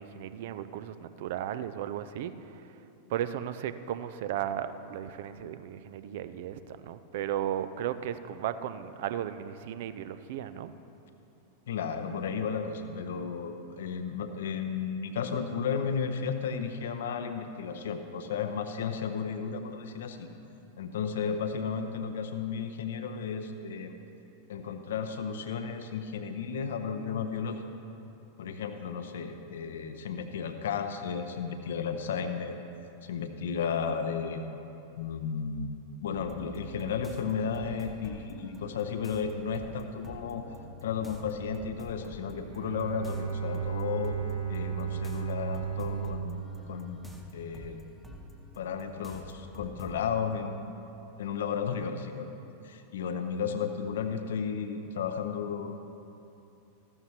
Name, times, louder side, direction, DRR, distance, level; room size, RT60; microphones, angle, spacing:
voice 1, 0.0-2.7 3.1-10.7, right 10 dB, 55° right, 12 dB, 0.5 m, -35 dB
voice 2, 11.7-20.3 20.8-23.9 24.5-27.6 28.4-32.6 33.0-34.5 35.0-35.7 36.0-40.4 40.8-44.2 44.5-47.1 47.3-47.8 48.6-50.9 51.2-52.3 52.6-55.8, left 6 dB, 60° left, 7 dB, 0.6 m, -33 dB
sound 1, 36.1-50.2, equal, ahead, 1.1 m, -47 dB
Bowed string instrument, 42.5-47.7, right 8 dB, 85° right, 1.5 m, -35 dB
14.5 x 12.5 x 2.9 m, 2.8 s
figure-of-eight pair, 90°, 0 cm